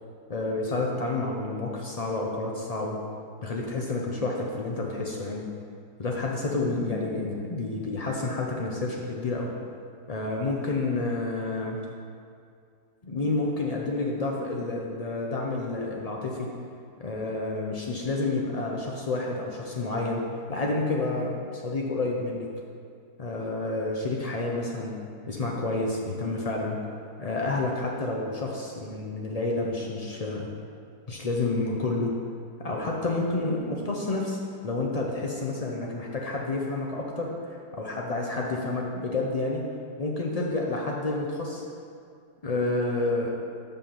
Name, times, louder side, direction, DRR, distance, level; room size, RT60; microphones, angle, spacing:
voice 1, 0.3-3.0 3.4-5.4 6.0-9.5 10.1-11.8 13.0-16.5 17.0-20.2 20.5-22.5 23.2-24.9 25.3-26.8 27.2-30.5 31.1-32.1 32.6-34.4 34.6-39.6 40.0-41.6 42.4-43.3, left 2 dB, 80° left, -1 dB, 0.3 m, -29 dB
5.6 x 5.5 x 6.8 m, 2.4 s
omnidirectional pair, 1.7 m